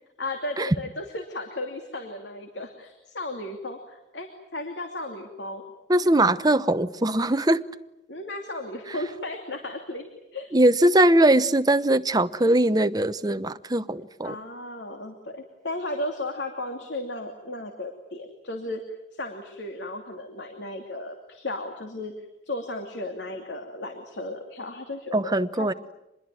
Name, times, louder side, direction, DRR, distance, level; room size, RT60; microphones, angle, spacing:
voice 1, 0.2-5.6 8.1-10.0 10.3-10.5 14.2-25.7, left 2 dB, 80° left, 2.8 m, -35 dB
voice 2, 5.9-7.6 10.5-14.4 25.1-25.7, right 1 dB, 20° right, 0.9 m, -21 dB
26.0 x 21.5 x 9.3 m
head